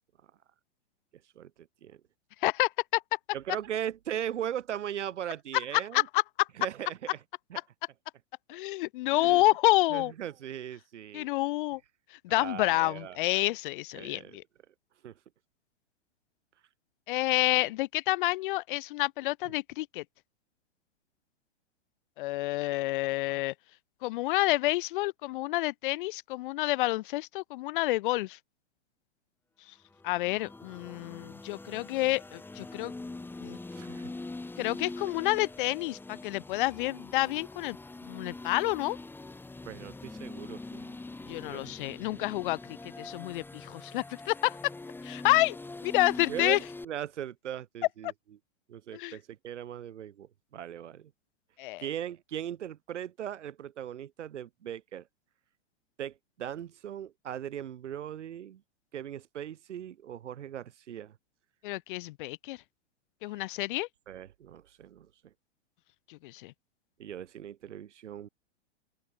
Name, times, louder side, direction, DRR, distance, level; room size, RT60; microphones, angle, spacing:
voice 1, 1.3-2.0 3.3-6.1 6.6-7.2 7.5-7.6 9.1-9.4 9.9-11.3 12.3-13.4 13.9-14.4 15.0-15.1 23.3-23.4 33.7-34.1 39.6-41.0 41.5-42.4 46.3-48.1 48.7-51.1 51.8-55.1 56.0-58.6 58.9-61.1 64.1-65.1 67.0-68.3, right 10 dB, 80° right, 1.3 m, -39 dB
voice 2, 2.4-3.0 5.7-6.5 8.5-10.1 11.1-11.8 12.2-14.4 17.1-20.0 22.2-23.5 24.0-28.4 30.0-32.9 33.4-33.6 34.6-37.8 38.1-39.0 41.3-44.6 45.0-45.6 45.8-46.6 48.9-49.2 51.6-51.8 61.6-62.6 63.2-63.9 66.1-66.5, left 19 dB, 45° left, 0.6 m, -29 dB
sound 1, 29.9-46.9, left 2 dB, 5° left, 2.7 m, -43 dB
open air
hypercardioid pair, 130°, 35 cm